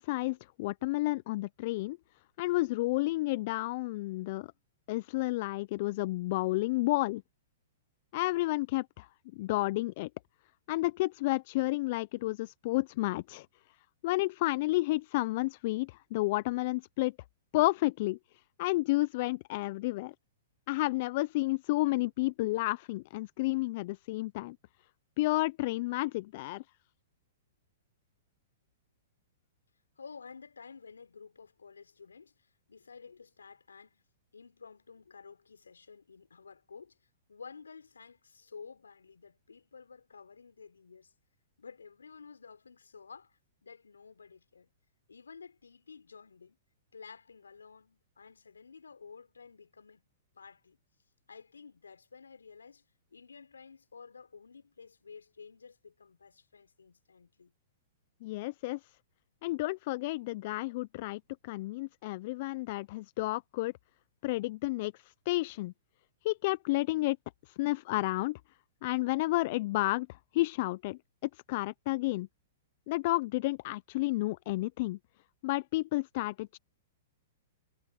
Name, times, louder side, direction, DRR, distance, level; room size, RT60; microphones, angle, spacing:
voice 1, 0.0-2.0 2.4-4.5 4.9-7.2 8.1-10.1 10.7-13.5 14.0-17.1 17.5-18.2 18.6-20.1 20.7-24.6 25.2-26.6 58.2-58.8 59.4-63.7 64.2-65.7 66.2-67.2 67.5-68.4 68.8-72.3 72.9-75.0 75.4-76.6, left 20 dB, 50° left, 0.6 m, -31 dB
voice 2, 30.0-34.0 34.3-41.1 41.6-44.7 45.1-46.6 46.9-50.1 50.3-50.8 51.3-52.8 53.1-57.5, left 5 dB, 85° left, 5.0 m, -52 dB
hypercardioid pair, 115°, 0 cm